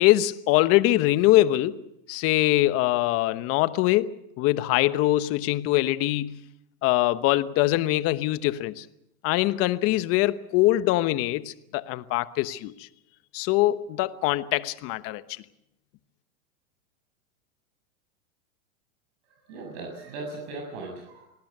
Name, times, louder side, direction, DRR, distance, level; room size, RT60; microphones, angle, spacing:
voice 1, 0.0-1.8 2.1-6.4 6.8-8.8 9.2-12.9 13.3-15.2, left 16 dB, 35° left, 1.1 m, -23 dB
voice 2, 19.3-21.3, right 3 dB, 50° right, 7.2 m, -38 dB
26.0 x 19.0 x 6.7 m
hypercardioid pair, 130°, 41 cm